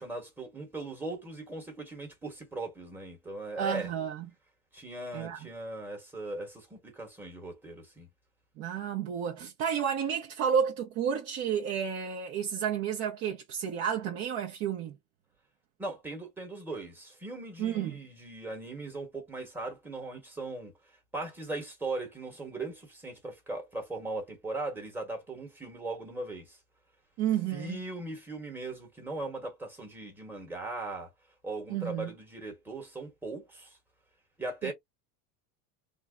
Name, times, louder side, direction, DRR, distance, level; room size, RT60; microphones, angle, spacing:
voice 1, 0.0-3.9 4.7-8.1 15.8-20.7 21.1-26.6 27.5-31.1 31.4-33.8 34.4-34.7, right 2 dB, 5° right, 1.0 m, -39 dB
voice 2, 3.6-4.3 5.1-5.4 8.6-14.9 17.6-18.0 27.2-27.8 31.7-32.1 34.6-34.7, right 8 dB, 30° right, 0.5 m, -31 dB
3.5 x 2.0 x 3.5 m
cardioid pair, 165°, 46 cm